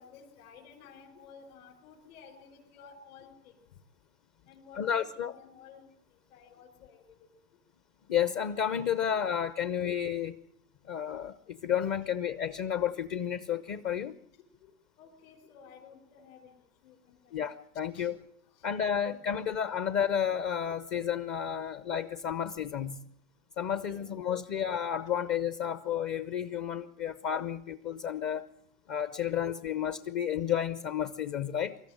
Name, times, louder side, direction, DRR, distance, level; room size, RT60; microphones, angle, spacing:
voice 1, 0.0-3.7 4.5-7.3 14.6-16.5 16.8-17.4 17.9-18.2 18.5-18.7 23.8-24.1 31.6-31.7, left 6 dB, 60° left, 2 dB, 5.5 m, -54 dB
voice 2, 4.8-5.3 8.1-10.4 10.9-14.1 17.3-18.2 18.6-23.0 23.6-28.5 28.9-31.8, left 9 dB, 30° left, 14 dB, 0.8 m, -31 dB
25.0 x 14.0 x 9.0 m, 0.69 s
hypercardioid pair, 120°, 49 cm